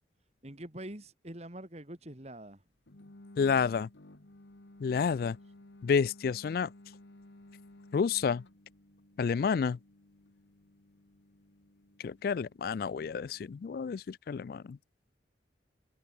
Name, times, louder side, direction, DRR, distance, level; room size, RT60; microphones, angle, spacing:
voice 1, 0.4-2.6, right 1 dB, 35° right, 2.4 m, -45 dB
sound 1, 2.9-13.7, left 1 dB, 85° left, 1.8 m, -56 dB
voice 2, 3.4-3.9 4.8-5.4 5.8-6.7 7.9-8.4 9.2-9.8 12.0-14.8, left 6 dB, 55° left, 0.3 m, -29 dB
head